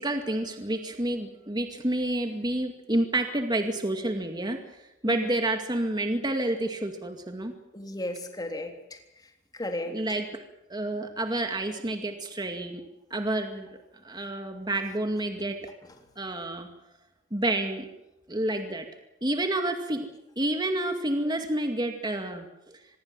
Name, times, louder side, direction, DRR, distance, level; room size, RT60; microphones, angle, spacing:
voice 1, 0.0-4.6 5.0-7.5 9.9-10.2 10.7-12.8 13.1-13.7 14.0-15.7 16.2-16.7 17.3-17.9 18.3-18.9 19.2-20.1 20.4-22.8, right 1 dB, 25° right, 5 dB, 2.2 m, -29 dB
voice 2, 7.7-10.2, left 1 dB, 20° left, 4 dB, 3.6 m, -36 dB
25.0 x 21.5 x 7.6 m, 0.91 s
head